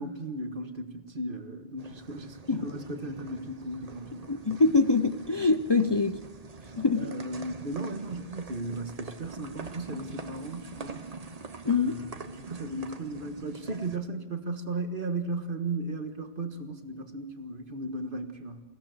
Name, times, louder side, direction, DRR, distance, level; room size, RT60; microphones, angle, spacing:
voice 1, 0.0-4.3 7.0-11.0 11.7-18.6, right 2 dB, 60° right, 6 dB, 1.7 m, -36 dB
sound 1, 1.8-14.0, right 4 dB, 40° right, 1.1 m, -44 dB
voice 2, 4.3-6.2 6.8-7.1 11.6-12.0, left 3 dB, 30° left, 8 dB, 0.6 m, -24 dB
21.5 x 16.0 x 7.9 m, 1.3 s
omnidirectional pair, 1.0 m